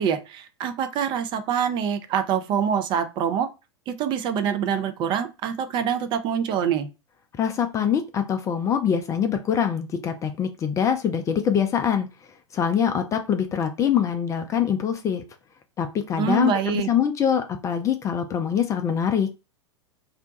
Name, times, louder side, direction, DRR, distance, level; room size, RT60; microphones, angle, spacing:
voice 1, 0.0-3.5 3.9-6.9 16.2-16.9, right 8 dB, 30° right, 9 dB, 0.5 m, -25 dB
voice 2, 7.4-12.1 12.5-15.2 15.8-19.3, left 8 dB, 20° left, 6 dB, 0.4 m, -24 dB
2.5 x 2.2 x 3.8 m, 0.28 s
figure-of-eight pair, 95°, 15 cm